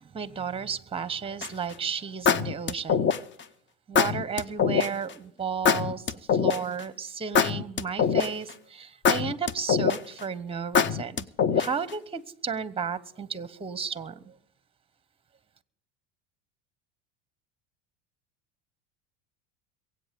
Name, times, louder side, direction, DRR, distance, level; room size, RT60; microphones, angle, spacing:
voice 1, 0.0-3.1 3.9-11.3 11.5-14.3, right 6 dB, 15° right, 1.0 m, -33 dB
sound 1, 1.4-1.7 2.3-3.4 3.9-4.9 5.6-6.8 7.3-8.5 9.0-10.2 10.7-11.9, left 6 dB, 30° left, 0.8 m, -23 dB
23.0 x 8.4 x 5.2 m
supercardioid pair, 95°, 36 cm